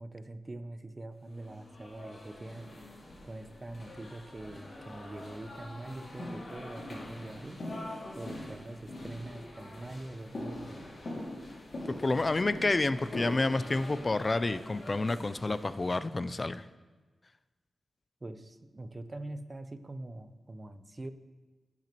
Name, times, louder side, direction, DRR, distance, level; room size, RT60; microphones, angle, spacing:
voice 1, 0.0-2.7 3.2-7.6 8.2-10.7 18.2-21.1, right 2 dB, 30° right, 10 dB, 0.5 m, -43 dB
sound 1, 1.4-16.1, left 1 dB, 50° left, 2.3 m, -43 dB
voice 2, 11.9-16.7, left 2 dB, 30° left, 14 dB, 0.3 m, -29 dB
15.0 x 6.0 x 3.0 m, 1.3 s
wide cardioid pair, 95°, 0 cm